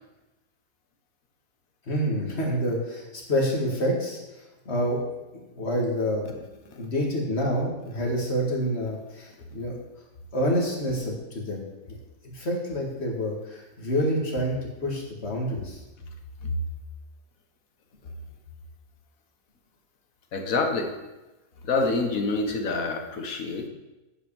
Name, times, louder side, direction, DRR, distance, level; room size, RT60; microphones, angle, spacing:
voice 1, 1.9-5.0 5.3-6.3 6.8-9.8 10.3-12.0 12.3-15.8, equal, 45° left, -1 dB, 2.3 m, -28 dB
voice 2, 20.3-20.9 21.6-23.7, left 3 dB, 70° left, 4 dB, 1.7 m, -27 dB
9.7 x 5.6 x 7.0 m, 1.1 s
omnidirectional pair, 1.5 m